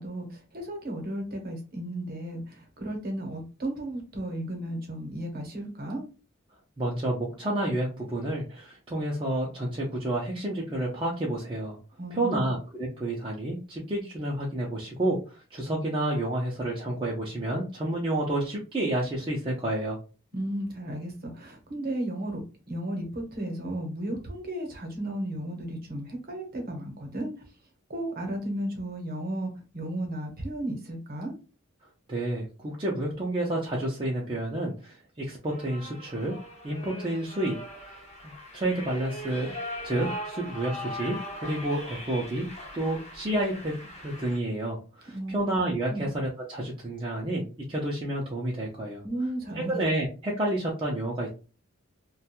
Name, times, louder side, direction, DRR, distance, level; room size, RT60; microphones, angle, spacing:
voice 1, 0.0-6.1 12.0-12.5 20.3-27.3 27.9-31.3 45.1-45.5 45.9-46.1 49.0-49.8, right 1 dB, 45° right, 3 dB, 0.9 m, -34 dB
voice 2, 6.8-11.8 12.1-20.0 32.1-36.4 36.6-37.6 37.8-39.5 39.8-42.5 42.7-49.0 49.7-51.3, right 1 dB, 25° right, -4 dB, 0.5 m, -30 dB
way of cross, 35.5-44.4, left 1 dB, 30° left, 0.6 m, -40 dB
2.4 x 2.2 x 2.8 m, 0.33 s
head